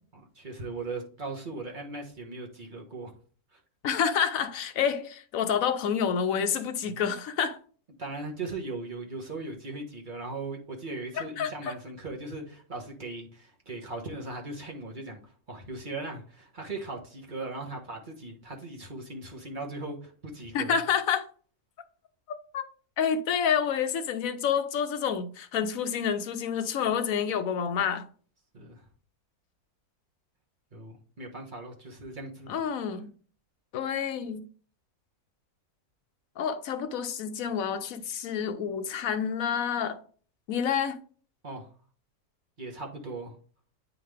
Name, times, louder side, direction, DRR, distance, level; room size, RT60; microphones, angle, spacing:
voice 1, 0.3-3.1 3.5-3.6 6.8-7.0 8.0-20.8 28.5-28.8 30.7-32.5 41.4-41.7 42.6-43.3, right 3 dB, 35° right, 1.4 m, -38 dB
voice 2, 3.8-7.6 11.1-11.7 20.5-21.2 22.5-22.6 23.0-28.1 32.5-33.1 33.7-34.5 36.4-40.0 40.5-41.0, left 7 dB, 65° left, 1.1 m, -28 dB
8.7 x 3.8 x 3.3 m
omnidirectional pair, 1.6 m